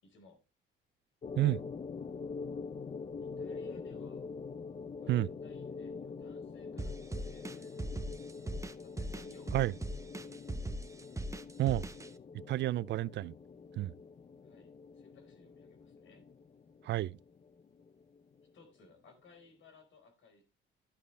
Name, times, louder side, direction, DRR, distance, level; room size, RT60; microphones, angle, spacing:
voice 1, 0.0-0.4 3.2-4.3 5.0-8.1 8.8-10.3 14.4-16.3 18.5-20.4, left 3 dB, 75° left, 4.3 m, -61 dB
sound 1, 1.2-18.5, left 5 dB, 35° left, 0.7 m, -45 dB
sound 2, 6.8-12.1, right 1 dB, 15° right, 1.0 m, -39 dB
voice 2, 12.5-13.3 13.8-13.9 16.8-17.2, right 15 dB, 65° right, 0.4 m, -30 dB
11.5 x 8.5 x 3.2 m
cardioid pair, 90°, 20 cm